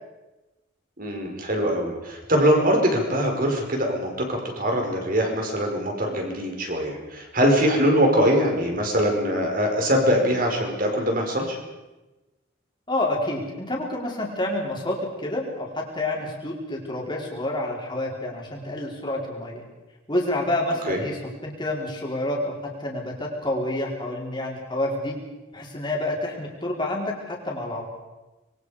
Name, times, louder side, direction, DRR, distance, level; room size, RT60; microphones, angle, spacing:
voice 1, 1.0-11.6 20.8-21.0, equal, 45° right, 2 dB, 5.0 m, -22 dB
voice 2, 12.9-19.6 20.1-25.1 25.5-27.8, left 1 dB, 25° left, -2 dB, 4.6 m, -28 dB
26.0 x 23.0 x 5.1 m, 1.1 s
head